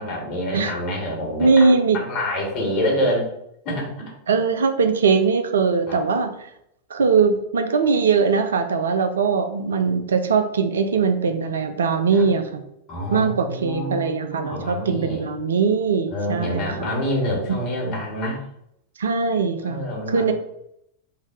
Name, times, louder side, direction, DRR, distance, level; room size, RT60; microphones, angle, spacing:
voice 1, 0.0-1.7 1.9-3.3 3.6-4.4 5.9-6.0 12.1-12.2 12.9-15.2 16.1-18.4 19.6-20.3, left 1 dB, 40° left, -2 dB, 1.7 m, -27 dB
voice 2, 1.4-2.0 3.0-3.1 4.3-6.3 6.9-12.6 13.1-16.9 17.8-17.9 19.0-20.3, right 5 dB, 65° right, 7 dB, 0.4 m, -21 dB
3.7 x 2.7 x 4.5 m, 0.76 s
figure-of-eight pair, 90°, 0 cm